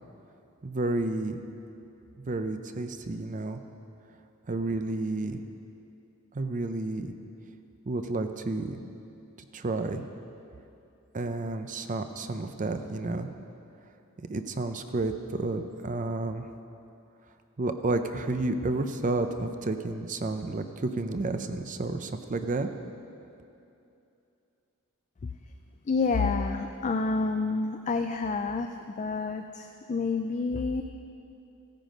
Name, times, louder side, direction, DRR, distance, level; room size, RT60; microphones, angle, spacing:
voice 1, 0.6-1.4 2.2-3.6 4.5-5.4 6.3-7.1 7.9-8.8 9.5-10.0 11.1-13.3 14.3-16.4 17.6-22.7, right 2 dB, 35° right, 8 dB, 0.6 m, -31 dB
voice 2, 25.9-30.8, left 4 dB, 35° left, 6 dB, 0.4 m, -29 dB
15.0 x 9.1 x 5.2 m, 2.7 s
head